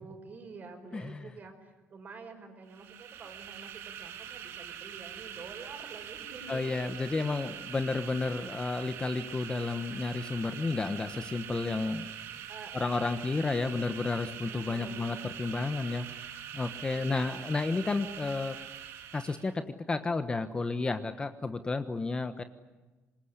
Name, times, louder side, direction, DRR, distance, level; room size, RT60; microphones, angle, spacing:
voice 1, 0.0-6.9 7.3-7.7 12.5-13.3 14.7-15.4 16.9-17.4, right 4 dB, 40° right, 5 dB, 5.5 m, -48 dB
voice 2, 0.9-1.3 6.5-12.1 12.7-16.3 16.5-18.6 19.1-19.6 19.9-22.4, left 3 dB, 20° left, 9 dB, 1.2 m, -32 dB
sound 1, 2.7-19.5, right 10 dB, 80° right, 2.4 m, -44 dB
26.0 x 21.0 x 9.9 m, 1.2 s
cardioid pair, 125°, 4 cm